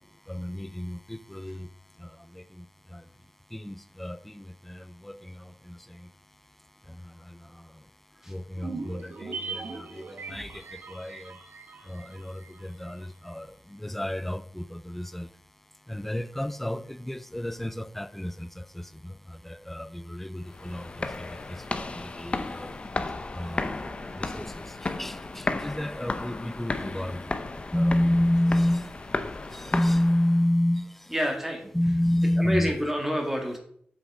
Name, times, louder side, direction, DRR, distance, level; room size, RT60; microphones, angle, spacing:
voice 1, 0.0-31.1 31.7-32.7, left 1 dB, 5° left, 0.4 m, -31 dB
sound 1, 8.6-13.1 13.3-13.4, right 4 dB, 80° right, 1.5 m, -40 dB
sound 2, 20.4-30.5, left 3 dB, 35° left, 0.8 m, -34 dB
voice 2, 31.1-31.8 32.4-33.6, equal, 10° right, 2.2 m, -28 dB
7.8 x 6.1 x 5.0 m
wide cardioid pair, 100°, 3 cm